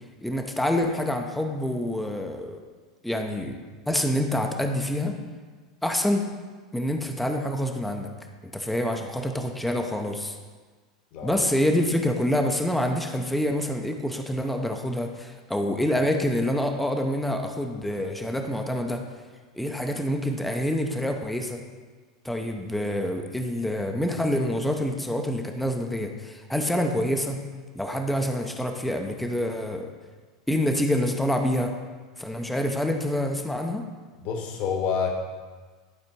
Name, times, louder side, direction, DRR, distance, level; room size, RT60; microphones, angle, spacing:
voice 1, 0.2-2.6 3.0-3.6 3.9-5.2 5.8-6.3 6.7-8.1 8.5-10.4 11.2-19.0 19.5-21.6 22.2-27.4 27.7-29.9 30.5-31.7 32.2-33.9, left 1 dB, 5° left, 3 dB, 0.7 m, -26 dB
voice 2, 11.1-11.4 34.2-35.1, left 6 dB, 50° left, 2 dB, 1.4 m, -28 dB
11.0 x 4.2 x 4.6 m, 1.4 s
figure-of-eight pair, 85°, 3 cm